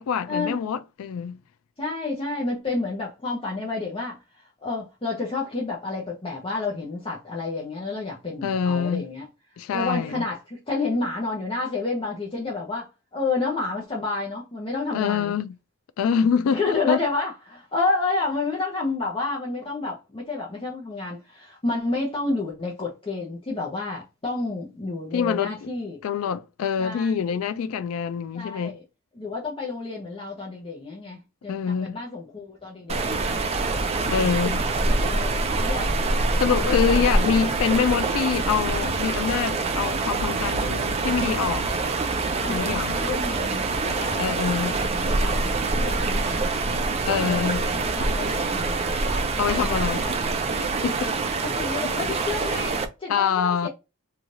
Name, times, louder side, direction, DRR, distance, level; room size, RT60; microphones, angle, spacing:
voice 1, 0.0-1.4 8.4-9.1 9.6-10.2 14.9-15.6 16.0-17.0 25.1-25.6 26.0-28.8 31.5-32.0 34.1-34.7 36.4-41.7 42.5-43.0 44.2-44.8 47.0-47.6 49.4-50.0 50.8-51.1 53.1-53.7, left 7 dB, 65° left, 0.3 m, -25 dB
voice 2, 1.8-9.3 9.7-15.3 16.5-26.0 26.8-27.4 28.3-28.8 29.2-33.4 34.0-34.3 34.9-35.9 36.5-37.0 42.1-46.6 47.3-48.9 49.5-50.3 51.5-53.7, left 3 dB, 25° left, 0.6 m, -30 dB
sound 1, 32.9-52.9, right 3 dB, 30° right, 0.4 m, -25 dB
3.1 x 2.3 x 2.5 m
head